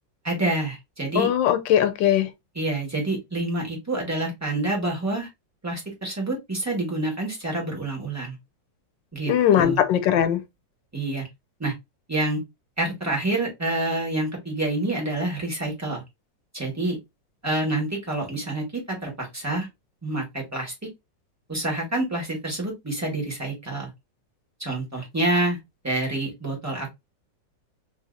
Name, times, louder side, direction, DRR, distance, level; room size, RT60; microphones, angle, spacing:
voice 1, 0.2-1.3 2.5-5.3 5.6-8.3 9.1-9.8 10.9-11.3 11.6-11.7 12.1-12.4 12.8-16.0 16.5-17.0 17.4-19.7 20.0-20.7 21.5-23.9 24.6-25.6 25.8-26.9, right 2 dB, 10° right, 1.3 m, -27 dB
voice 2, 1.2-2.3 9.3-10.4, left 10 dB, 85° left, 1.3 m, -20 dB
3.6 x 2.8 x 2.5 m
omnidirectional pair, 2.0 m